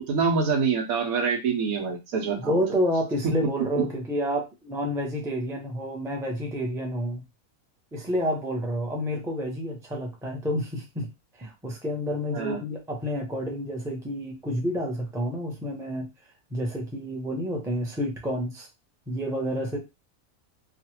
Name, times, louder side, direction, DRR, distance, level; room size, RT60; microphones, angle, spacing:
voice 1, 0.1-2.6 12.3-12.6, right 5 dB, 85° right, 3 dB, 1.3 m, -25 dB
voice 2, 2.4-7.2 7.9-11.1 11.4-16.1 16.5-18.7 19.1-19.8, equal, 5° right, 1 dB, 0.4 m, -29 dB
3.1 x 2.4 x 2.8 m, 0.24 s
omnidirectional pair, 1.5 m